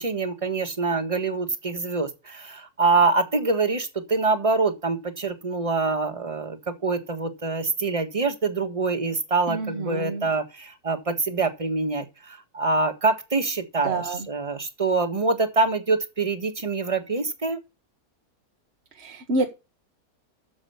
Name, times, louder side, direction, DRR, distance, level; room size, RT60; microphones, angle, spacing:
voice 1, 0.0-17.6, right 3 dB, 25° right, 1.5 m, -25 dB
voice 2, 9.5-10.3 13.8-14.2 19.0-19.5, right 2 dB, 50° right, 1.4 m, -28 dB
9.1 x 7.2 x 6.9 m
omnidirectional pair, 1.5 m